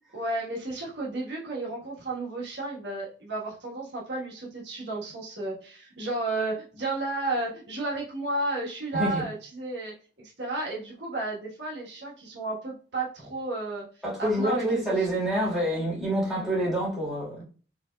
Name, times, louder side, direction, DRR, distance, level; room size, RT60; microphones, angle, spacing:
voice 1, 0.1-13.9 14.2-15.1 15.5-15.6 16.3-16.5, right 2 dB, 70° right, 1.4 m, -33 dB
voice 2, 14.0-17.4, right 1 dB, ahead, 1.8 m, -27 dB
4.9 x 3.0 x 2.3 m
head